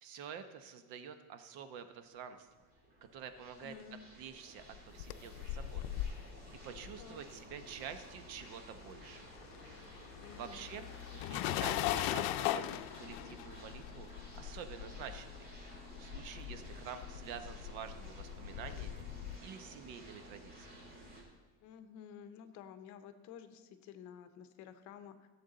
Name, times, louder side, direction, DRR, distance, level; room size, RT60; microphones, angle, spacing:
voice 1, 0.0-2.5 3.1-3.7 4.1-5.8 6.1-6.3 6.6-9.2 10.4-14.1 14.4-15.5 16.0-19.0 19.4-20.7, right 7 dB, 70° right, 9 dB, 0.9 m, -48 dB
sound 1, 2.1-21.2, right 1 dB, 25° right, 2.1 m, -54 dB
voice 2, 3.6-4.0 7.0-7.2 10.2-10.7 21.6-25.3, left 8 dB, 55° left, 9 dB, 0.8 m, -52 dB
sound 2, 4.7-8.4 8.6-19.4, left 13 dB, 90° left, 0.6 m, -40 dB
15.5 x 7.2 x 3.9 m, 1.3 s
cardioid pair, 175°, 36 cm